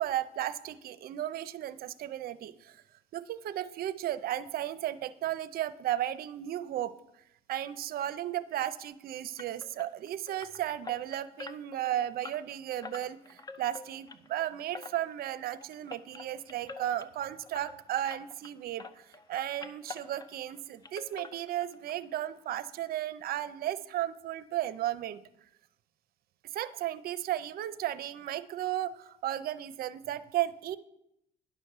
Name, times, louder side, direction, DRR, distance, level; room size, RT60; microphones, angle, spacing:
voice 1, 0.0-2.8 3.1-6.9 7.5-25.2 26.5-30.8, right 12 dB, 65° right, 15 dB, 0.6 m, -34 dB
sound 1, 9.4-18.5 18.8-20.6 20.8-21.9 22.2-22.3 22.8-22.9 23.2-23.3, left 4 dB, 25° left, 0.7 m, -47 dB
10.5 x 6.3 x 6.6 m, 0.79 s
cardioid pair, 110°, 17 cm